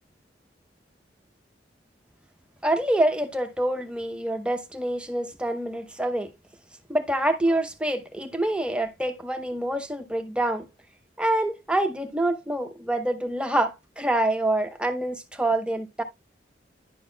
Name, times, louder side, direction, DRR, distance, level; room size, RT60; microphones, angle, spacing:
voice 1, 2.6-6.3 6.9-10.7 11.2-16.0, right 1 dB, 5° right, 0.8 m, -26 dB
10.5 x 6.2 x 2.3 m
head